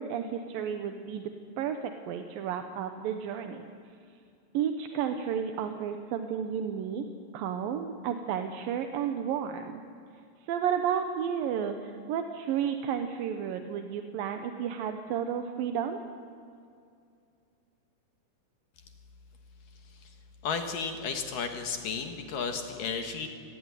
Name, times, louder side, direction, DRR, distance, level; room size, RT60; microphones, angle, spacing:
voice 1, 0.0-3.6 4.5-7.1 7.3-9.8 10.5-16.0, right 8 dB, 70° right, 7 dB, 2.5 m, -32 dB
voice 2, 20.4-23.3, left 5 dB, 60° left, 6 dB, 2.7 m, -33 dB
26.0 x 18.5 x 9.9 m, 2.4 s
omnidirectional pair, 5.0 m